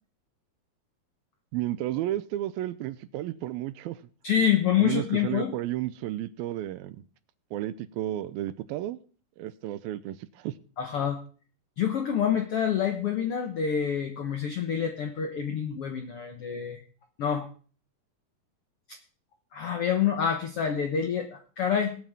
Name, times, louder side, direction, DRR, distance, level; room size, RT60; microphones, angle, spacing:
voice 1, 1.5-4.0 4.8-7.0 7.5-9.0 9.4-10.5, right 14 dB, 85° right, 2.5 m, -32 dB
voice 2, 4.2-5.5 10.8-11.2 11.8-16.8 17.2-17.5 19.5-22.0, left 8 dB, 75° left, 1.3 m, -27 dB
20.0 x 8.7 x 3.6 m
omnidirectional pair, 4.3 m